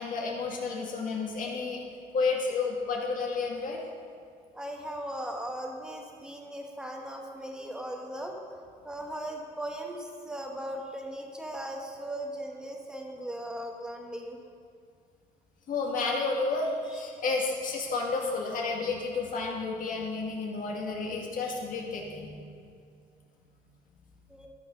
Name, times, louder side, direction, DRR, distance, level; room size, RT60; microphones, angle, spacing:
voice 1, 0.0-1.9 2.1-3.8 15.7-22.5, left 4 dB, 55° left, -1 dB, 2.0 m, -31 dB
voice 2, 4.5-8.4 8.8-14.4 16.9-17.0 24.3-24.5, right 1 dB, 5° right, 1 dB, 1.4 m, -38 dB
13.0 x 6.0 x 5.2 m, 2.3 s
cardioid pair, 110°, 17 cm